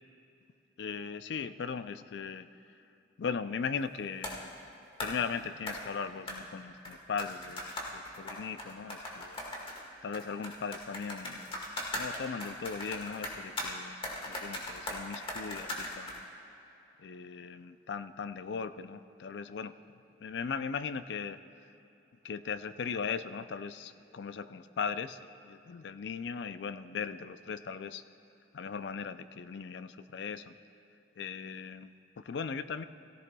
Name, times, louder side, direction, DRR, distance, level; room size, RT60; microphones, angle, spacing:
voice 1, 0.8-2.5 3.2-4.5 5.0-9.4 10.0-11.4 11.9-16.2 17.0-19.7 20.2-21.4 22.2-28.0 28.5-30.5 31.2-32.8, left 6 dB, 70° left, 12 dB, 0.4 m, -38 dB
sound 1, 4.2-4.4 5.0-5.2 5.7-5.8 6.3-6.4 6.8-9.8 10.1-13.7 14.0-16.2, left 1 dB, 30° left, 1.8 m, -39 dB
17.5 x 14.5 x 2.3 m, 2.9 s
head